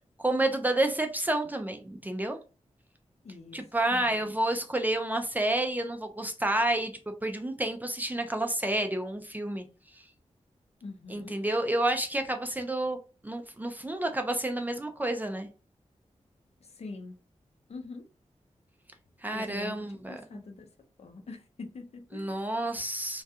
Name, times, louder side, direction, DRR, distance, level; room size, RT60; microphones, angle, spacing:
voice 1, 0.2-2.4 3.5-9.7 9.9-10.0 11.1-15.5 19.2-20.4 22.1-23.2, right 1 dB, 15° right, 0.3 m, -30 dB
voice 2, 3.2-4.3 10.8-11.4 16.6-17.2 17.7-18.1 19.3-20.7 21.0-22.4, left 3 dB, 60° left, 0.5 m, -44 dB
2.3 x 2.2 x 2.7 m
wide cardioid pair, 115°, 12 cm